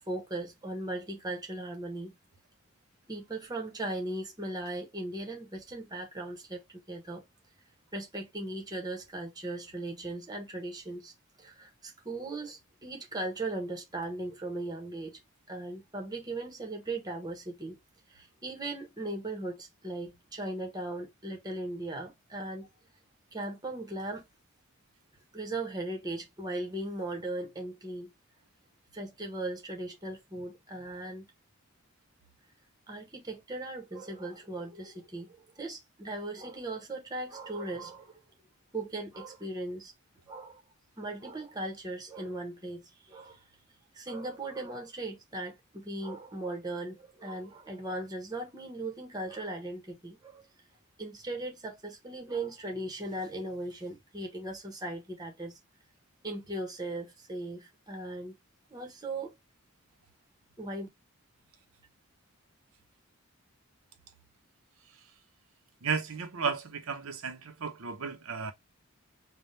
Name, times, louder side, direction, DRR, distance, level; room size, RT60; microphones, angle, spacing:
voice 1, 0.0-2.1 3.1-7.2 7.9-11.1 11.4-15.2 15.5-17.8 18.1-22.7 23.3-24.3 25.3-28.1 28.9-31.3 32.9-38.2 38.7-39.9 40.3-40.6 41.0-43.4 43.9-50.5 51.0-55.6 56.2-58.4 58.7-59.3 60.6-60.9, right 2 dB, 20° right, 1.0 m, -38 dB
voice 2, 65.8-68.5, right 5 dB, 75° right, 0.8 m, -34 dB
3.5 x 2.3 x 4.1 m
head